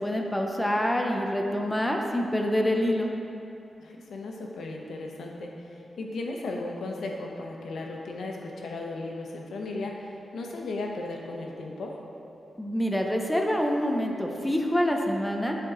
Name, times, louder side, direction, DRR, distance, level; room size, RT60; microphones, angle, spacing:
voice 1, 0.0-3.1 12.6-15.6, equal, 5° left, 1 dB, 0.5 m, -26 dB
voice 2, 3.8-12.0, left 2 dB, 85° left, 0 dB, 0.9 m, -36 dB
10.5 x 4.6 x 3.8 m, 2.9 s
wide cardioid pair, 170°, 0 cm